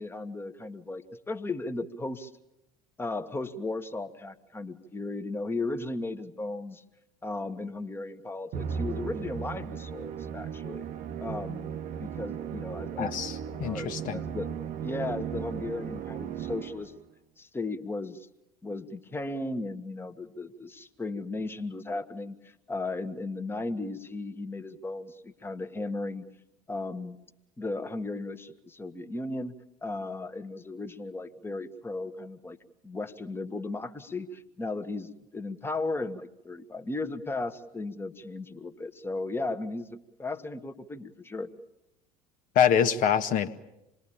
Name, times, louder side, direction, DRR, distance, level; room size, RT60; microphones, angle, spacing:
voice 1, 0.0-2.3 3.0-6.8 7.2-10.9 11.2-14.5 14.8-16.9 17.4-18.3 18.6-26.2 26.7-27.2 27.6-29.5 29.8-32.6 32.8-41.5, left 2 dB, 10° left, 8 dB, 1.4 m, -36 dB
Musical instrument, 8.5-17.0, right 8 dB, 45° right, 1.1 m, -36 dB
voice 2, 13.0-13.3 13.6-14.2 42.5-43.5, left 8 dB, 45° left, 9 dB, 1.5 m, -24 dB
27.0 x 21.0 x 8.8 m, 0.90 s
figure-of-eight pair, 70°, 20 cm